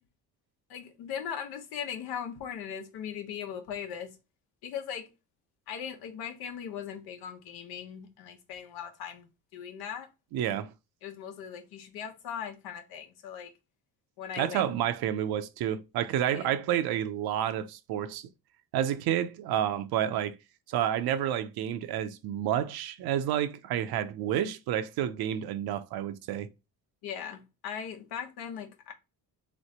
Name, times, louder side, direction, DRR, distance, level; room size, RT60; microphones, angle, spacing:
voice 1, 0.7-4.1 4.6-5.1 5.7-10.1 11.0-13.5 14.2-14.6 16.3-16.5 27.0-28.9, left 8 dB, 90° left, 1.1 m, -39 dB
voice 2, 10.3-10.7 14.4-18.2 18.7-20.4 20.7-26.5, right 10 dB, 80° right, 0.7 m, -30 dB
3.7 x 3.2 x 4.2 m
cardioid pair, 145°, 37 cm